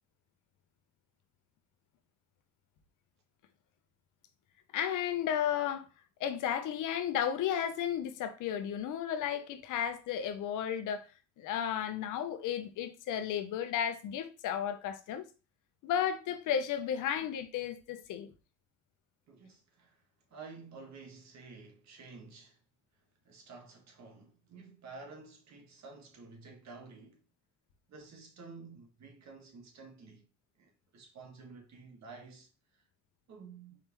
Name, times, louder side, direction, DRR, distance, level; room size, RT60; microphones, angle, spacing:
voice 1, 4.7-5.9 6.2-11.1 11.4-15.3 15.8-18.3, left 9 dB, 85° left, 0.8 m, -33 dB
voice 2, 19.3-20.0 20.3-22.6 23.2-27.2 27.9-30.3 30.6-32.8 33.3-33.8, right 4 dB, 65° right, 1.5 m, -51 dB
4.7 x 3.5 x 3.0 m
cardioid pair, 90°, 30 cm